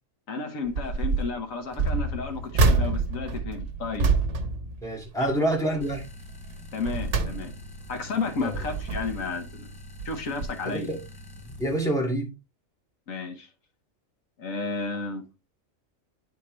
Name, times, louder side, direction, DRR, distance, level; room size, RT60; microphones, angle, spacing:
voice 1, 0.3-4.1 5.2-5.3 6.7-9.7 10.0-10.9 13.1-13.5 14.4-15.2, left 4 dB, 80° left, 1.5 m, -32 dB
sound 1, 0.7-1.3 1.7-5.4 5.8-6.1 6.6-7.9 8.4-9.3 10.0-10.2 10.4-10.5, right 3 dB, 65° right, 1.1 m, -27 dB
voice 2, 4.8-6.0 8.4-8.5 10.7-11.0 11.6-12.3, right 1 dB, ahead, 2.0 m, -27 dB
sound 2, 5.8-11.9, left 1 dB, 35° left, 0.4 m, -45 dB
9.7 x 4.3 x 3.1 m
omnidirectional pair, 1.4 m